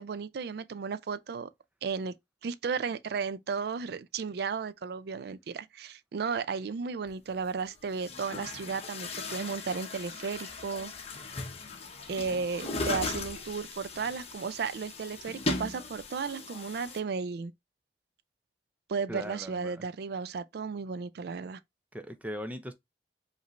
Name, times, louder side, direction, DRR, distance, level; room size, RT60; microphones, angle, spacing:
voice 1, 0.0-1.5 1.8-2.1 2.4-10.9 12.1-17.5 18.9-21.6, right 5 dB, 65° right, 0.4 m, -34 dB
Chatter / Gurgling / Tap, 7.1-7.2 7.9-17.0, left 3 dB, 35° left, 0.9 m, -38 dB
voice 2, 19.1-19.8 21.9-22.7, equal, 10° right, 0.5 m, -39 dB
5.1 x 2.6 x 3.0 m
head